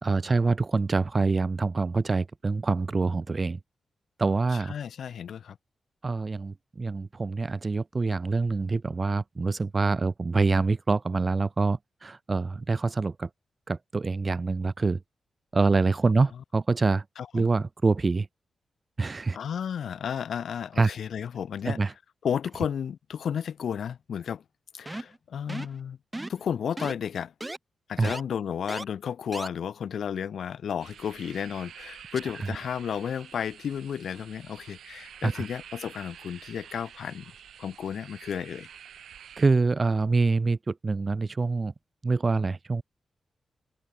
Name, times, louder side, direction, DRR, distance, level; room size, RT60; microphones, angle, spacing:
voice 1, 0.0-3.6 4.2-4.7 6.0-13.3 13.7-15.0 15.5-17.0 17.3-18.3 19.0-19.4 20.8-20.9 21.6-21.9 28.0-28.1 35.2-35.4 39.4-41.7 42.0-42.8, right 3 dB, 40° right, 1.0 m, -25 dB
voice 2, 4.7-5.6 17.2-17.5 19.3-21.8 22.2-24.4 24.7-26.0 26.3-27.3 27.9-37.2 37.6-38.7, left 8 dB, 80° left, 1.4 m, -33 dB
sound 1, 24.9-25.2 25.5-25.8 26.1-26.4 26.8-26.9 27.4-27.6 28.0-28.2 28.7-28.8 29.3-29.5, right 1 dB, 15° right, 0.5 m, -35 dB
sound 2, 30.8-39.5, right 9 dB, 85° right, 1.1 m, -48 dB
cardioid pair, 65°, 0 cm